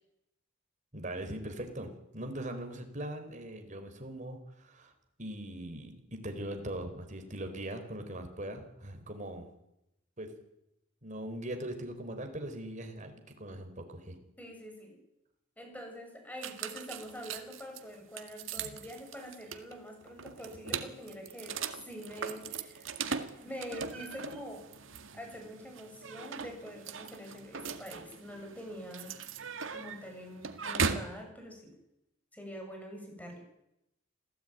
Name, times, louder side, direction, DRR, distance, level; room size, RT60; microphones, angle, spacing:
voice 1, 0.9-1.9 2.1-4.9 5.2-9.5 10.2-10.3 11.0-14.2, right 1 dB, 40° right, 6 dB, 4.4 m, -40 dB
voice 2, 14.4-15.0 15.6-21.6 21.8-23.0 23.4-24.6 25.1-29.2 29.7-31.7 32.3-33.4, equal, 10° left, 3 dB, 7.1 m, -45 dB
sound 1, 16.4-31.2, right 5 dB, 70° right, 2.0 m, -39 dB
27.0 x 16.5 x 9.3 m, 0.86 s
head